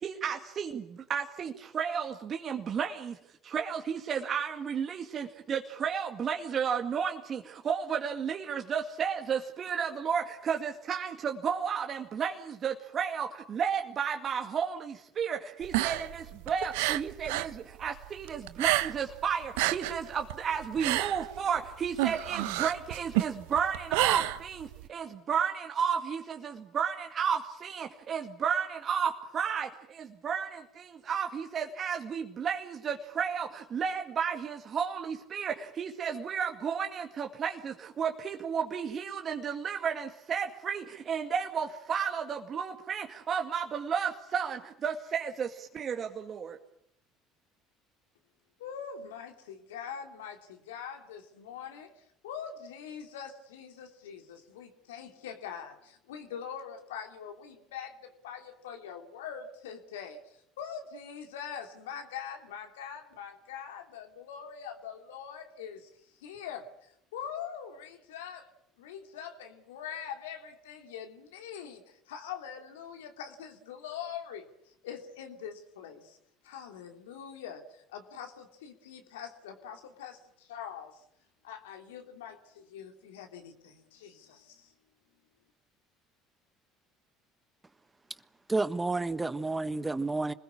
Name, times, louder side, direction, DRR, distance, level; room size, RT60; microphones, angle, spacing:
voice 1, 0.0-3.2 3.4-46.6, right 7 dB, 45° right, 3 dB, 2.2 m, -33 dB
sound 1, 15.6-17.5 17.8-19.2 19.4-24.9, right 18 dB, 75° right, 1.0 m, -30 dB
voice 2, 48.6-51.9 52.2-65.9 66.2-68.5 68.8-76.2 76.4-81.0 81.4-84.7, left 8 dB, 80° left, 5 dB, 3.0 m, -43 dB
voice 3, 88.5-90.3, right 3 dB, 15° right, 14 dB, 1.3 m, -30 dB
26.5 x 20.5 x 8.7 m, 0.73 s
hypercardioid pair, 65°, 0 cm